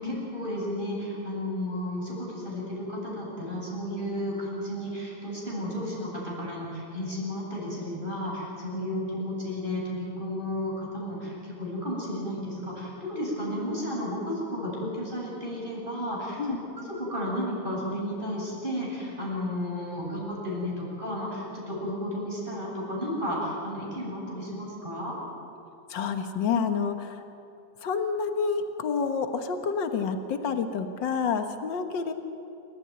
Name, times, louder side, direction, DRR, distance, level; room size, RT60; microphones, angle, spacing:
voice 1, 0.0-25.2, left 1 dB, 25° right, -4 dB, 8.2 m, -33 dB
voice 2, 25.9-27.2 27.8-32.1, left 5 dB, 75° left, 7 dB, 2.0 m, -28 dB
28.0 x 14.5 x 9.6 m, 2.6 s
omnidirectional pair, 2.0 m